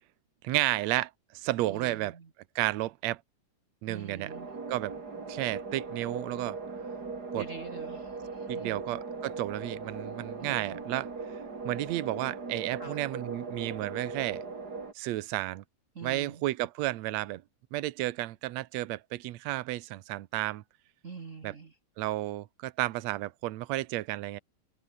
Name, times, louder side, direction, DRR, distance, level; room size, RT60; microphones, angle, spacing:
voice 1, 0.4-2.2 2.5-3.2 3.8-4.3 4.7-4.9 5.3-6.6 7.3-7.5 8.5-11.1 11.6-14.4 14.9-15.6 16.0-17.4 17.7-20.6 21.4-21.5 22.0-24.4, right 16 dB, 85° right, 1.5 m, -32 dB
voice 2, 1.7-2.3 3.9-4.5 7.4-8.8 10.4-10.8 12.7-13.0 15.9-16.4 21.0-21.7, right 5 dB, 65° right, 0.7 m, -45 dB
sound 1, 4.3-14.9, right 4 dB, 25° right, 3.2 m, -39 dB
omnidirectional pair, 4.2 m